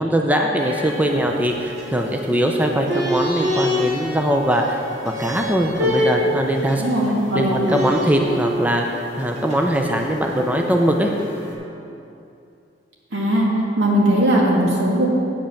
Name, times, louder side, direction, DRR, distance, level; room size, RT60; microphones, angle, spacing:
voice 1, 0.0-6.8 7.3-11.1, equal, 10° right, 2 dB, 0.5 m, -21 dB
sound 1, 0.6-11.5, left 1 dB, 40° right, 1.9 m, -27 dB
voice 2, 6.8-7.5 13.1-13.5 13.8-15.1, right 1 dB, 75° right, -3 dB, 2.0 m, -18 dB
8.8 x 5.4 x 6.9 m, 2.6 s
head